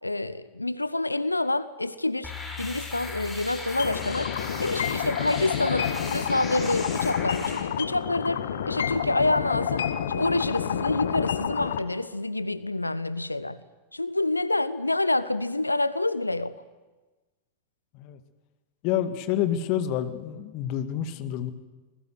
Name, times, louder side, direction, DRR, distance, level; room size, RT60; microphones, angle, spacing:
voice 1, 0.0-2.3 2.6-4.3 4.6-13.6 13.9-16.6, left 2 dB, 85° left, 0.7 m, -27 dB
sound 1, 2.2-7.6, left 3 dB, 10° left, 6.8 m, -37 dB
sound 2, 3.8-11.8, left 8 dB, 65° left, 1.3 m, -29 dB
voice 2, 18.8-21.5, left 10 dB, 45° left, 2.0 m, -28 dB
26.5 x 20.5 x 7.9 m
figure-of-eight pair, 90°, 0 cm